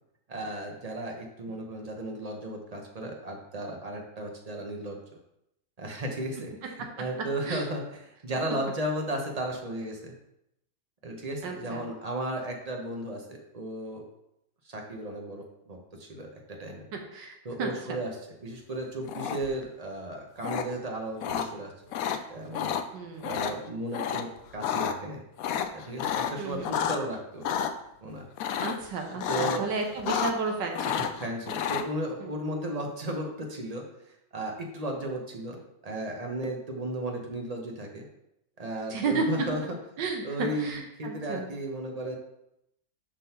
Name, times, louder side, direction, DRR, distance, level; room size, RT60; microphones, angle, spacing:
voice 1, 0.3-5.2 5.8-10.1 11.0-14.0 14.6-16.8 17.4-21.7 22.3-22.8 23.2-25.2 25.7-27.4 28.0-28.2 29.3-29.7 31.0-33.8 34.3-38.1 38.6-39.8 40.2-42.2, right 1 dB, 35° right, 1 dB, 0.7 m, -35 dB
voice 2, 11.4-11.8 17.1-18.0 22.9-23.3 26.4-26.9 28.6-31.1 32.2-32.3 38.9-39.2 40.0-41.4, right 4 dB, 80° right, 2 dB, 1.7 m, -33 dB
sound 1, 19.1-19.6 20.4-20.6 21.2-21.5 21.9-22.2 22.5-22.8 23.2-23.5 23.9-24.2 24.5-24.9 25.4-27.0 27.4-27.7 28.4-28.9 29.2-29.6 29.9-30.5 30.7-31.8, left 9 dB, 75° left, 0.8 m, -30 dB
11.0 x 3.8 x 2.9 m, 0.81 s
omnidirectional pair, 1.9 m